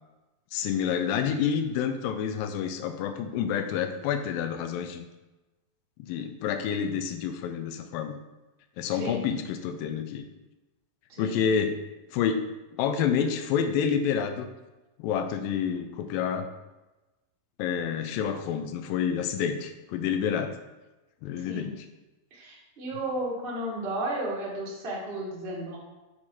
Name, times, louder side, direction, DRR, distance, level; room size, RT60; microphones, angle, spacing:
voice 1, 0.5-5.1 6.0-8.2 8.8-10.3 11.2-11.8 12.1-12.4 12.8-14.5 15.0-16.5 17.6-20.5 21.2-21.9, left 7 dB, 90° left, 8 dB, 2.3 m, -28 dB
voice 2, 22.3-25.8, right 1 dB, 75° right, -5 dB, 0.5 m, -33 dB
6.6 x 4.4 x 4.3 m, 1.1 s
omnidirectional pair, 4.0 m